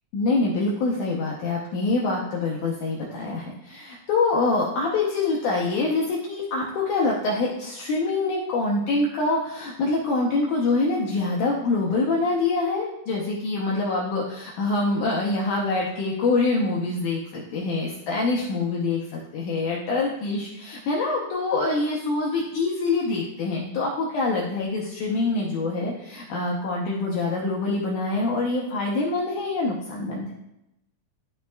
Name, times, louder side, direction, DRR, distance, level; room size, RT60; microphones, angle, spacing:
voice 1, 0.1-30.3, left 3 dB, 75° left, -3 dB, 2.0 m, -25 dB
12.0 x 5.7 x 2.3 m, 0.87 s
omnidirectional pair, 4.1 m